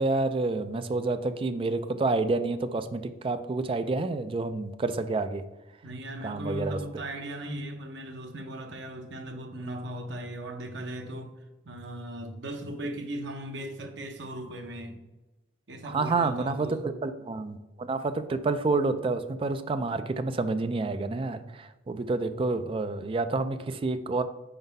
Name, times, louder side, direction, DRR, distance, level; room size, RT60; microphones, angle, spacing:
voice 1, 0.0-5.4 6.2-6.8 15.8-24.2, right 3 dB, 30° right, 10 dB, 0.3 m, -29 dB
voice 2, 5.8-11.3 11.6-15.0 15.7-16.8, right 1 dB, 85° right, 5 dB, 0.8 m, -37 dB
4.5 x 4.0 x 5.2 m, 1.1 s
head